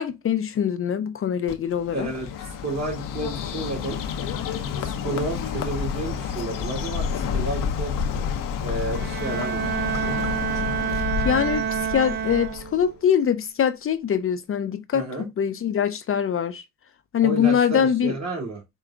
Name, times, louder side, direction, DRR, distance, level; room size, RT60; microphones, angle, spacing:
voice 1, 0.0-2.1 11.2-16.6 17.1-18.1, left 8 dB, 40° left, 0.5 m, -23 dB
Bird, 1.5-12.9, left 7 dB, 70° left, 0.7 m, -29 dB
voice 2, 1.9-4.0 4.8-7.9 8.6-9.7 14.9-15.3 17.2-18.6, right 2 dB, 55° right, 2.1 m, -31 dB
Bowed string instrument, 8.9-12.9, right 9 dB, 35° right, 0.4 m, -28 dB
5.1 x 2.2 x 3.5 m
supercardioid pair, 65°, 33 cm